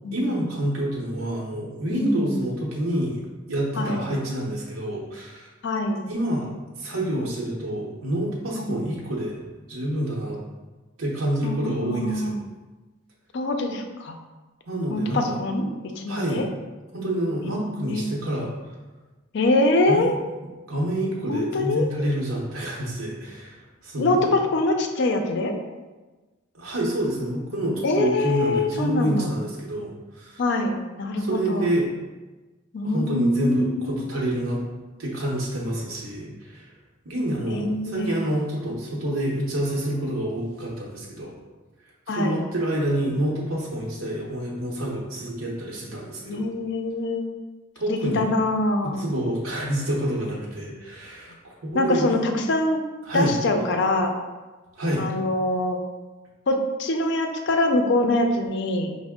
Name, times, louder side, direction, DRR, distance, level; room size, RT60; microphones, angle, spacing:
voice 1, 0.1-5.5 6.1-6.5 6.8-10.4 11.0-12.3 14.7-15.4 16.1-16.4 16.9-18.7 19.9-20.1 20.7-24.3 26.5-30.4 31.2-31.9 32.8-34.6 35.0-36.7 37.0-41.4 42.1-46.5 47.8-48.3 48.8-52.3 53.0-53.4 54.8-55.1, right 1 dB, 90° right, -4 dB, 0.8 m, -28 dB
voice 2, 1.9-2.3 3.8-4.0 5.6-6.0 8.6-8.8 11.4-12.4 13.3-14.2 14.9-16.5 17.4-18.1 19.3-20.2 21.3-21.9 24.0-25.5 27.8-29.3 30.4-31.7 32.7-34.1 37.5-38.2 42.1-42.4 46.3-47.3 47.9-49.0 51.7-52.8 53.1-54.2 55.0-55.8 56.5-59.0, left 2 dB, 60° left, 5 dB, 0.4 m, -24 dB
5.1 x 2.0 x 3.5 m, 1.2 s
head